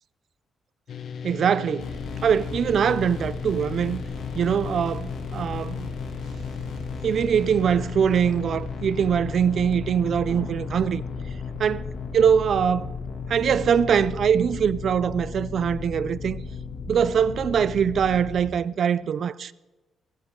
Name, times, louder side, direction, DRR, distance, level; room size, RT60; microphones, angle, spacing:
sound 1, 0.9-18.3, left 6 dB, 45° left, 0.8 m, -37 dB
voice 1, 1.2-1.9 2.2-4.0 4.3-5.9 7.0-11.0 11.6-11.8 12.1-12.9 13.3-16.4 16.9-19.5, right 7 dB, 45° right, 0.4 m, -22 dB
sound 2, 1.8-18.5, left 3 dB, 75° left, 2.4 m, -37 dB
17.0 x 14.5 x 3.8 m
cardioid pair, 165°, 0 cm